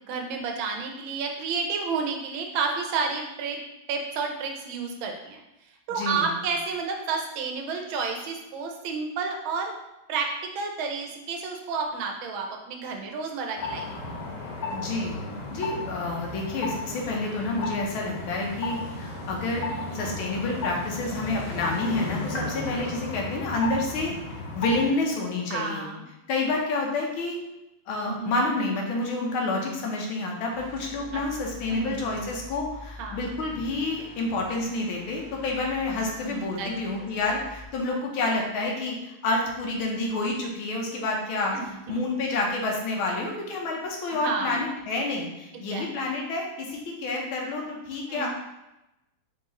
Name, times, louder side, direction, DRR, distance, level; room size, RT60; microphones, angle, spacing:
voice 1, 0.1-3.6 3.9-5.4 5.9-9.7 10.1-13.9 19.7-20.2 25.5-26.0 28.1-28.4 31.1-31.2 31.7-32.1 33.0-33.2 36.2-36.7 41.5-42.0 44.2-44.6 45.7-45.9 48.1-48.3, right 5 dB, 80° right, 2 dB, 1.5 m, -31 dB
voice 2, 5.9-6.3 14.7-15.1 15.5-19.7 19.9-24.1 24.5-25.8 26.3-27.4 27.9-48.3, left 2 dB, 90° left, 0 dB, 1.7 m, -29 dB
sound 1, 13.5-24.9, left 3 dB, 60° left, 1.6 m, -34 dB
sound 2, 30.5-37.7, left 1 dB, 55° right, 1.1 m, -46 dB
4.4 x 3.7 x 2.9 m, 0.93 s
omnidirectional pair, 2.2 m